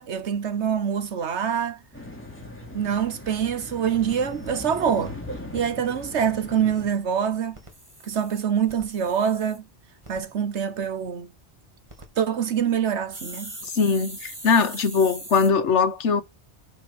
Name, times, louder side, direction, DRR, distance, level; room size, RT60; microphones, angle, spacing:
voice 1, 0.0-1.8 2.7-5.1 5.5-7.6 8.0-9.6 10.1-11.3 12.2-13.6, right 8 dB, 75° right, 1.3 m, -25 dB
sound 1, 1.9-6.9, left 1 dB, 10° left, 2.8 m, -39 dB
sound 2, 4.1-5.1 7.4-9.6 10.0-10.2 11.7-12.1 13.1-15.5, right 1 dB, 25° right, 2.6 m, -41 dB
voice 2, 13.6-16.2, left 5 dB, 80° left, 1.4 m, -21 dB
8.5 x 5.5 x 6.0 m
omnidirectional pair, 1.2 m